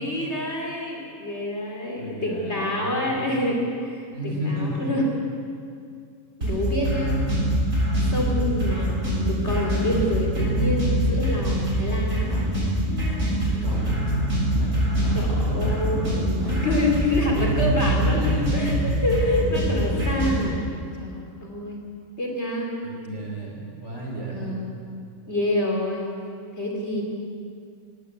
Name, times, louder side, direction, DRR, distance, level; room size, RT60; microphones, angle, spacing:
voice 1, 0.0-5.1 6.4-7.3 8.1-12.2 15.1-18.7 19.0-20.6 21.0-21.8 22.2-22.7 24.3-24.7 25.3-26.1 26.6-27.0, left 1 dB, 55° left, 0 dB, 3.1 m, -27 dB
voice 2, 2.0-3.3 4.1-4.9 13.3-16.1 17.2-18.9 22.8-24.6, right 1 dB, 60° right, -1 dB, 5.1 m, -32 dB
sound 1, 6.4-20.4, equal, 90° right, 8.2 m, -24 dB
sound 2, 12.2-12.8 13.6-14.2 14.9-15.5 16.3-16.9, equal, 15° left, 7.5 m, -36 dB
18.0 x 17.5 x 9.4 m, 2.4 s
omnidirectional pair, 1.4 m